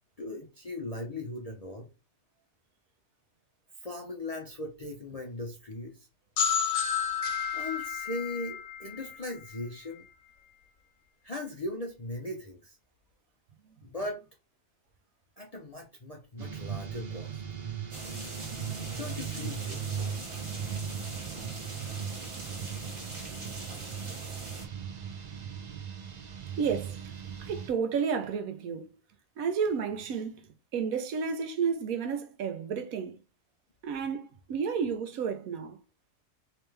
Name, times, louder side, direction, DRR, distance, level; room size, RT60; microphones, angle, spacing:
voice 1, 0.2-1.9 3.8-6.1 7.5-10.0 11.2-12.8 13.8-14.2 15.4-17.4 19.0-19.8, left 2 dB, 45° left, 0.5 m, -38 dB
sound 1, 6.4-10.0, left 7 dB, 80° left, 1.1 m, -31 dB
sound 2, 16.4-27.7, right 7 dB, 60° right, 0.4 m, -38 dB
sound 3, 17.9-24.7, right 2 dB, 25° right, 0.9 m, -42 dB
voice 2, 26.6-27.0 27.4-28.9 29.4-33.2 33.8-35.8, right 6 dB, 80° right, 1.1 m, -31 dB
3.3 x 3.1 x 3.2 m
omnidirectional pair, 1.5 m